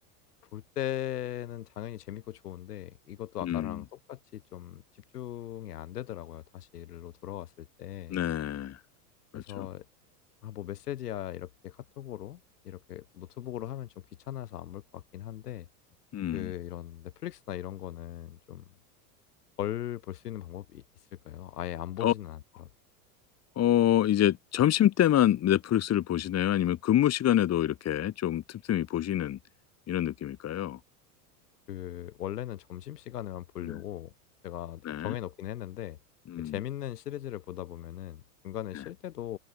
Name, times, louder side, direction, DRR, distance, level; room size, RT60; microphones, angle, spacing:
voice 1, 0.5-4.8 5.1-8.2 9.3-9.9 10.4-13.9 14.3-15.7 16.3-18.6 19.6-20.8 21.2-22.7 31.7-34.1 34.4-36.0 36.4-39.4, left 12 dB, 90° left, 7.7 m, -39 dB
voice 2, 3.4-3.8 8.1-8.8 9.3-9.7 16.1-16.5 22.0-22.1 23.6-29.4 29.9-30.8 33.6-33.8 34.8-35.1 36.3-36.6 38.7-38.8, left 12 dB, 35° left, 3.0 m, -26 dB
supercardioid pair, 115°, 45 cm